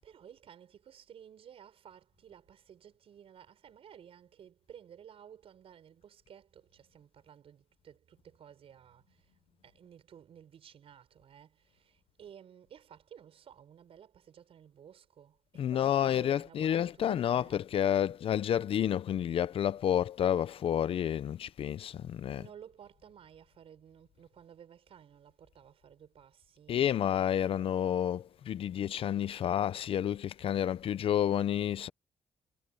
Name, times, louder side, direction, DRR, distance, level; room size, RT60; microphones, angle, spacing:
voice 1, 0.0-17.6 22.4-26.8 28.5-28.6, right 9 dB, 60° right, 6.3 m, -55 dB
voice 2, 15.6-22.5 26.7-31.9, left 10 dB, 60° left, 0.6 m, -30 dB
wide cardioid pair, 150°, 11 cm